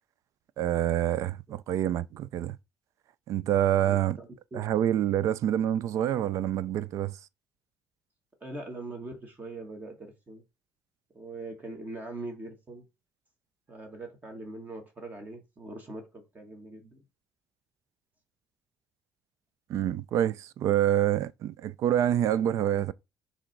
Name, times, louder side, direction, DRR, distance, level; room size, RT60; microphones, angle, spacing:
voice 1, 0.6-2.6 3.3-4.2 4.5-7.2 19.7-22.9, right 11 dB, 70° right, 0.4 m, -27 dB
voice 2, 3.8-4.6 8.4-10.4 11.1-12.9 13.7-17.0, right 2 dB, 30° right, 1.9 m, -42 dB
6.2 x 3.5 x 6.1 m
cardioid pair, 100°, 6 cm